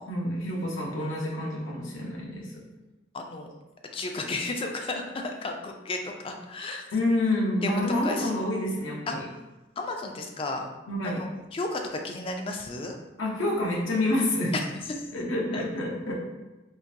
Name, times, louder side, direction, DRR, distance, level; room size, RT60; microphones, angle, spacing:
voice 1, 0.1-2.5 6.9-9.2 10.9-11.2 13.2-14.5 15.1-16.1, left 1 dB, 85° left, -2 dB, 0.8 m, -28 dB
voice 2, 3.1-3.5 3.9-6.9 7.6-8.3 9.1-9.2 9.8-10.7 11.0-11.3 11.5-13.0 14.9-15.0 15.5-15.6, left 2 dB, 30° left, 3 dB, 0.3 m, -33 dB
3.7 x 2.6 x 2.6 m, 1.1 s
head